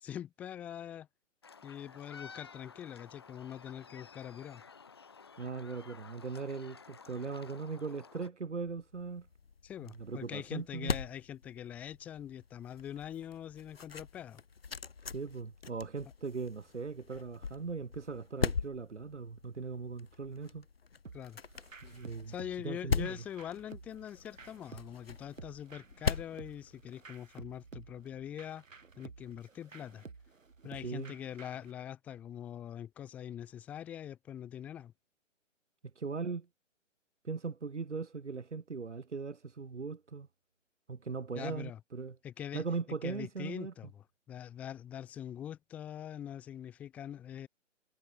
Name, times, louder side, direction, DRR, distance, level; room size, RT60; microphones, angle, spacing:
voice 1, 0.0-1.1 1.6-4.6 9.6-14.4 21.1-21.4 22.3-28.6 29.0-30.0 30.6-34.9 41.4-41.8 42.2-42.6 43.0-47.5, left 10 dB, 5° left, 2.2 m, -43 dB
sound 1, 1.4-8.3, left 5 dB, 20° left, 1.3 m, -53 dB
voice 2, 5.4-9.3 9.8-11.0 15.1-20.7 21.8-22.3 22.6-23.2 30.8-31.1 36.0-36.5 37.2-40.3 40.9-42.2 42.5-43.7, right 4 dB, 65° right, 5.5 m, -39 dB
sound 2, 8.6-27.3, left 5 dB, 50° left, 5.4 m, -41 dB
sound 3, 21.1-31.7, right 4 dB, 85° right, 6.2 m, -53 dB
hypercardioid pair, 180°, 38 cm